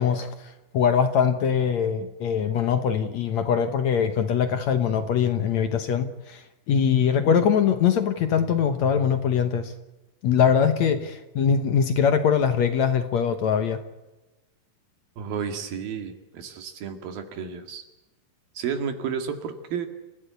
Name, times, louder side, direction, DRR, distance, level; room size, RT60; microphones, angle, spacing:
voice 1, 0.0-9.7 10.2-13.8, left 7 dB, 65° left, 9 dB, 2.1 m, -22 dB
voice 2, 15.2-17.8 18.6-19.9, right 7 dB, 80° right, 7 dB, 3.9 m, -32 dB
29.0 x 15.5 x 8.2 m, 1.1 s
omnidirectional pair, 4.2 m